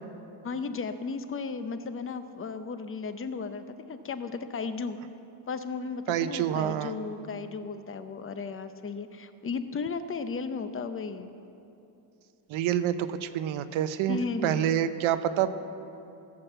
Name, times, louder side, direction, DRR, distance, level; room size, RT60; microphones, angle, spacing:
voice 1, 0.4-5.0 5.5-11.3 14.1-14.7, left 4 dB, 25° left, 10 dB, 0.7 m, -35 dB
voice 2, 6.1-6.9 12.5-15.5, right 10 dB, 75° right, 11 dB, 0.9 m, -27 dB
15.5 x 7.5 x 7.9 m, 2.8 s
cardioid pair, 125°, 48 cm